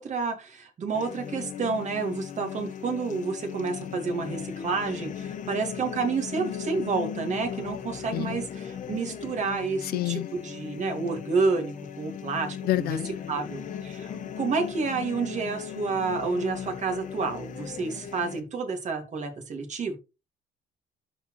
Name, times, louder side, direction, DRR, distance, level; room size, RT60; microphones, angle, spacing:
voice 1, 0.0-13.0 13.3-20.0, right 4 dB, 45° right, 2.4 m, -30 dB
sound 1, 0.9-18.4, left 8 dB, 50° left, 1.3 m, -38 dB
voice 2, 9.8-10.3 12.1-12.3 12.7-13.1 14.1-14.3, left 16 dB, 65° left, 0.5 m, -29 dB
12.5 x 4.4 x 3.2 m
cardioid pair, 110°, 17 cm